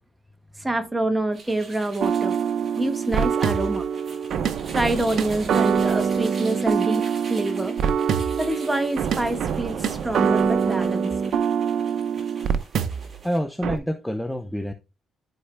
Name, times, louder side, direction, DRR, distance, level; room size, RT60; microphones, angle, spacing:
voice 1, 0.6-2.4 2.8-3.9 4.7-7.8 8.4-11.1, right 1 dB, 15° right, 1.4 m, -26 dB
sound 1, 1.3-13.4, right 3 dB, 40° right, 3.0 m, -44 dB
sound 2, 2.0-13.2 13.6-13.8, right 7 dB, 70° right, 0.7 m, -24 dB
voice 2, 13.2-14.7, equal, 5° left, 0.7 m, -27 dB
13.0 x 4.6 x 2.2 m
cardioid pair, 90°, 0 cm